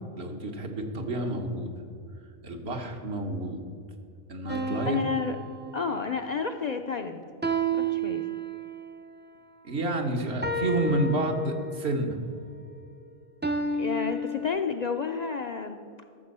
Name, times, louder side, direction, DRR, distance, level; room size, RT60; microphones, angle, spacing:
voice 1, 0.1-1.7 2.4-3.6 4.3-5.0 9.6-12.2, right 2 dB, 70° right, 3 dB, 1.4 m, -29 dB
sound 1, 4.5-6.3 7.4-8.9 10.4-12.0 13.4-14.5, right 2 dB, 15° right, 0.4 m, -31 dB
voice 2, 4.9-5.4 5.7-7.2 7.7-8.4 13.8-15.8, left 5 dB, 55° left, 6 dB, 0.5 m, -30 dB
13.0 x 6.7 x 5.4 m, 2.5 s
omnidirectional pair, 1.1 m